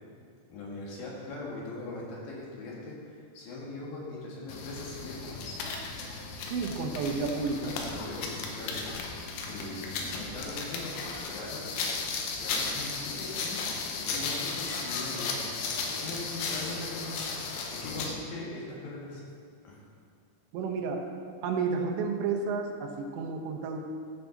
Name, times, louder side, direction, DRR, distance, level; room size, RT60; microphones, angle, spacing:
voice 1, 0.5-5.6 7.7-8.8 9.4-11.7 12.3-13.6 13.9-17.3 17.7-19.2 19.6-19.8, left 2 dB, 60° left, -5 dB, 3.2 m, -41 dB
sound 1, 4.5-18.2, left 4 dB, 85° left, 3.0 m, -35 dB
voice 2, 6.5-7.8 20.5-21.0 21.4-23.8, right 4 dB, 90° right, 3 dB, 3.2 m, -31 dB
14.0 x 5.7 x 3.9 m, 2.1 s
omnidirectional pair, 5.1 m